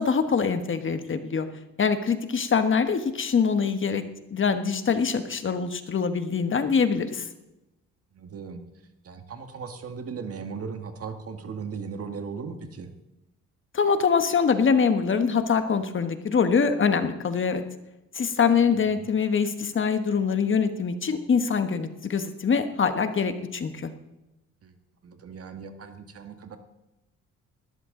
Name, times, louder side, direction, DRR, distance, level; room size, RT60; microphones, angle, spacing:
voice 1, 0.0-1.5 1.8-4.0 4.3-7.3 13.7-17.6 18.1-23.9, left 6 dB, 40° left, 9 dB, 1.4 m, -24 dB
voice 2, 8.1-8.6 9.0-12.9 18.9-19.0 24.6-24.8 25.0-26.6, right 5 dB, 50° right, 7 dB, 1.7 m, -37 dB
18.5 x 13.0 x 3.9 m, 0.94 s
cardioid pair, 90°, 30 cm